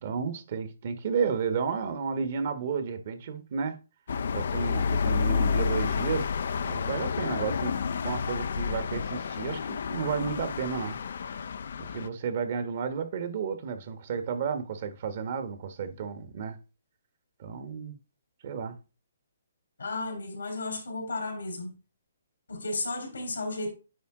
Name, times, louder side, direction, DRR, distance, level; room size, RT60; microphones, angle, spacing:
voice 1, 0.0-3.8 4.3-6.3 6.6-7.7 8.0-11.0 11.9-16.6 17.4-18.0 18.4-18.8, right 6 dB, 50° right, 1.2 m, -32 dB
sound 1, 4.1-12.1, left 6 dB, 65° left, 0.4 m, -30 dB
voice 2, 19.8-21.7 22.5-23.7, left 2 dB, 90° left, 3.1 m, -33 dB
9.4 x 3.6 x 3.7 m
hypercardioid pair, 140°, 0 cm